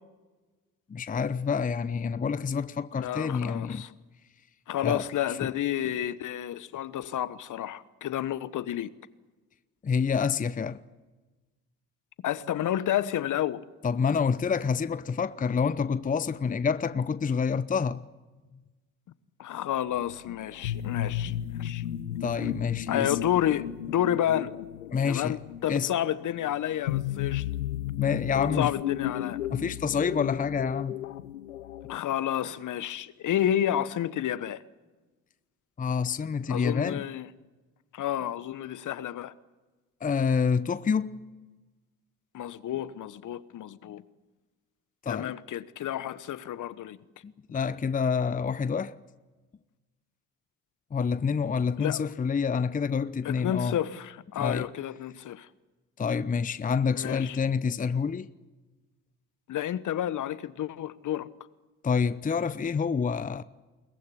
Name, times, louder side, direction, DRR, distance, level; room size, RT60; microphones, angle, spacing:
voice 1, 0.9-3.8 4.8-5.0 5.4-5.5 9.8-10.8 13.8-18.0 22.2-23.2 24.9-25.4 25.7-25.9 28.0-28.7 29.5-31.0 35.8-37.0 40.0-41.2 45.0-45.3 47.2-48.9 50.9-53.8 54.4-54.7 56.0-58.3 61.8-63.4, left 6 dB, 20° left, 0.7 m, -27 dB
voice 2, 2.9-3.9 4.7-8.9 12.2-13.6 19.4-21.9 22.9-24.5 25.1-27.5 28.3-29.4 31.9-34.6 36.5-37.3 37.9-39.3 42.3-44.0 45.1-47.0 51.8-52.0 53.2-55.5 57.0-57.4 59.5-61.3, left 11 dB, 50° left, 1.2 m, -30 dB
sound 1, 19.9-32.0, left 12 dB, 90° left, 0.9 m, -34 dB
22.0 x 20.0 x 10.0 m
hypercardioid pair, 60°, 39 cm